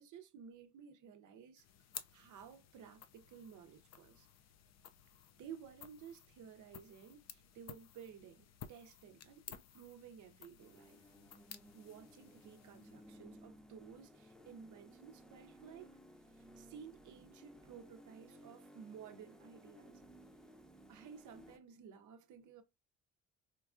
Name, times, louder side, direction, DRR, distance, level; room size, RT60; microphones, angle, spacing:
voice 1, 0.0-1.7 2.1-4.3 5.3-11.0 11.7-15.9 16.3-20.0 20.9-22.6, right 7 dB, 75° right, 0.7 m, -55 dB
sound 1, 1.6-13.2, left 9 dB, 60° left, 0.5 m, -56 dB
sound 2, 10.6-21.6, equal, ahead, 0.7 m, -59 dB
4.5 x 2.3 x 2.5 m
cardioid pair, 90°, 30 cm